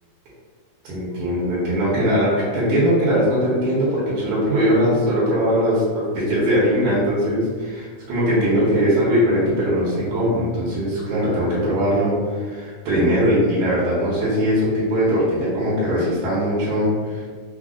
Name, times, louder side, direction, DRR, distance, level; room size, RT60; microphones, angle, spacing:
voice 1, 0.8-5.8 6.1-17.3, equal, 75° right, -8 dB, 2.1 m, -20 dB
4.9 x 2.2 x 2.4 m, 1.5 s
omnidirectional pair, 3.6 m